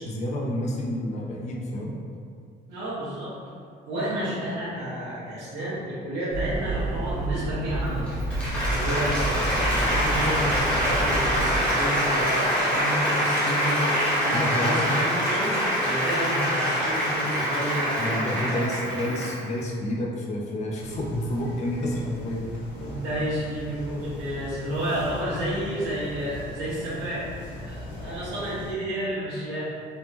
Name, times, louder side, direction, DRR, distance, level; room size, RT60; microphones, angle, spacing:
voice 1, 0.0-1.9 14.3-14.8 18.0-22.5, left 1 dB, 40° left, -2 dB, 0.4 m, -29 dB
voice 2, 2.7-3.3 3.9-8.1 8.6-15.6 15.8-19.0 22.7-27.2 27.5-29.6, right 1 dB, 70° right, -11 dB, 0.9 m, -30 dB
sound 1, 6.3-11.6, right 2 dB, 35° right, 0.5 m, -30 dB
Applause, 7.9-19.5, equal, 5° left, 0.8 m, -25 dB
sound 2, 20.8-28.7, left 1 dB, 70° left, 0.7 m, -39 dB
3.3 x 2.1 x 2.8 m, 2.3 s
cardioid pair, 170°, 18 cm